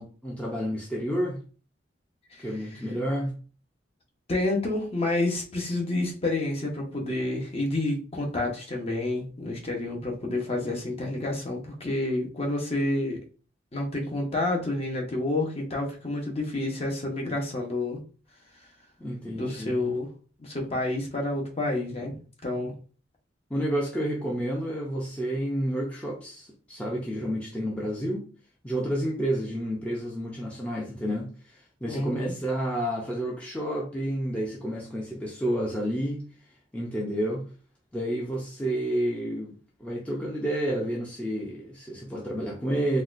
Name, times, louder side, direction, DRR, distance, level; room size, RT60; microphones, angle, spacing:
voice 1, 0.0-1.4 2.4-3.3 19.0-19.9 22.5-22.7 23.5-28.3 28.6-36.2 36.7-37.5 37.9-43.0, right 1 dB, 5° left, 0.6 m, -30 dB
voice 2, 4.3-13.2 13.7-18.0 19.3-20.1 20.4-22.1 22.4-22.7 31.8-32.3, left 2 dB, 35° left, 0.9 m, -29 dB
4.1 x 2.3 x 2.5 m
head